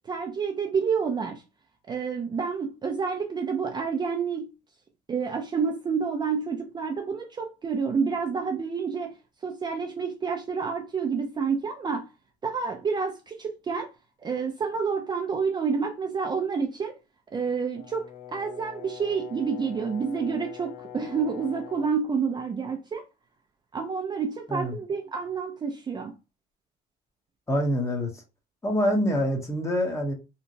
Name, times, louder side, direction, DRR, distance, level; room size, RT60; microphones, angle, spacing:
voice 1, 0.1-1.4 1.9-4.5 5.1-9.1 9.4-12.1 12.4-13.9 14.2-17.0 17.3-18.1 18.3-23.0 23.7-26.1, right 5 dB, 25° right, 0.4 m, -29 dB
Brass instrument, 17.8-22.0, left 11 dB, 60° left, 0.5 m, -44 dB
voice 2, 24.5-24.8 27.5-28.2 28.6-30.1, equal, 15° left, 0.9 m, -26 dB
2.9 x 2.1 x 2.5 m
cardioid pair, 110°, 17 cm